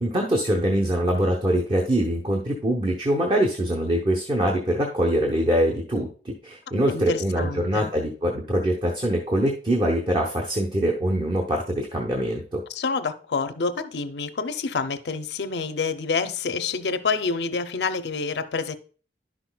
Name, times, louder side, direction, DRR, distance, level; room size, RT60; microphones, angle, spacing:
voice 1, 0.0-12.6, right 1 dB, 30° right, 0.8 m, -23 dB
voice 2, 6.9-7.9 12.7-18.8, left 4 dB, 75° left, 0.6 m, -28 dB
11.0 x 6.0 x 2.3 m
head